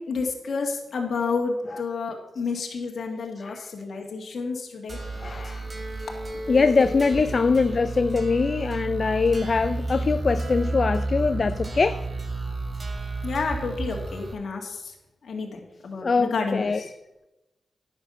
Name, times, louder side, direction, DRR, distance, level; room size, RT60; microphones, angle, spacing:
voice 1, 0.0-5.0 13.2-14.9 15.2-16.9, left 4 dB, 70° left, 1.8 m, -30 dB
sound 1, 4.9-14.3, right 2 dB, 45° right, 2.7 m, -31 dB
voice 2, 5.2-5.7 6.5-12.0 16.0-16.8, left 4 dB, 55° left, 0.4 m, -22 dB
9.9 x 7.2 x 6.6 m
supercardioid pair, 45°, 0 cm